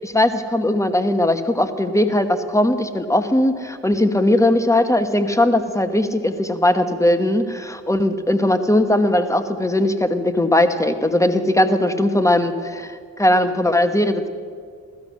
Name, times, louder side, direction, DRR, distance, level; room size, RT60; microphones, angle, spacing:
voice 1, 0.0-14.3, left 1 dB, 10° left, 8 dB, 1.1 m, -19 dB
16.5 x 13.0 x 6.3 m, 2.1 s
cardioid pair, 90°, 30 cm